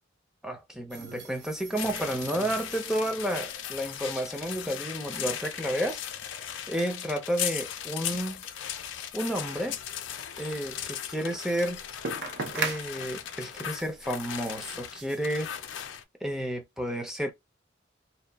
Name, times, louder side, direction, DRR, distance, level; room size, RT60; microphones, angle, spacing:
voice 1, 0.4-6.0 6.7-8.4 9.1-9.8 10.4-11.8 12.5-15.5 16.2-17.3, equal, ahead, 0.5 m, -31 dB
sound 1, 0.9-16.0, right 4 dB, 55° right, 0.5 m, -43 dB
sound 2, 1.7-16.0, left 10 dB, 70° left, 0.4 m, -37 dB
2.8 x 2.2 x 2.2 m
head